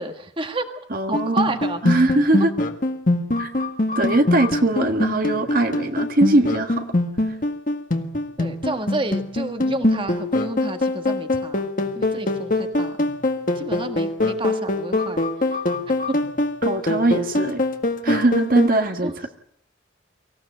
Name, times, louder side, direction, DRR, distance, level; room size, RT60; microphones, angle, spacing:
voice 1, 0.0-1.8 8.4-11.7 11.9-13.1 13.5-15.2 15.5-15.6 16.1-16.2 19.0-19.2, right 2 dB, 25° right, 7 dB, 1.6 m, -30 dB
voice 2, 0.9-1.4 1.8-2.5 3.4-3.5 3.9-6.9 7.3-7.4 16.6-17.6 18.0-19.1, right 2 dB, 45° right, 5 dB, 1.5 m, -20 dB
sound 1, 1.1-18.7, left 2 dB, 45° left, 1.8 m, -23 dB
24.5 x 15.5 x 9.0 m, 0.73 s
head